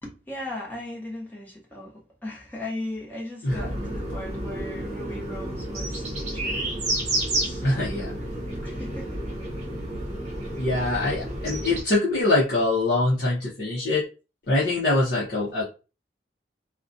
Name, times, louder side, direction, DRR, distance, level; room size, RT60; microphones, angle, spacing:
voice 1, 0.0-6.8 7.3-8.3 8.6-9.2, left 1 dB, 10° left, -3 dB, 0.8 m, -38 dB
sound 1, 3.5-11.8, right 1 dB, 40° right, 0.7 m, -30 dB
voice 2, 7.6-8.1 10.6-14.0 14.5-15.6, left 2 dB, 55° left, -7 dB, 0.7 m, -23 dB
2.4 x 2.1 x 2.5 m, 0.32 s
head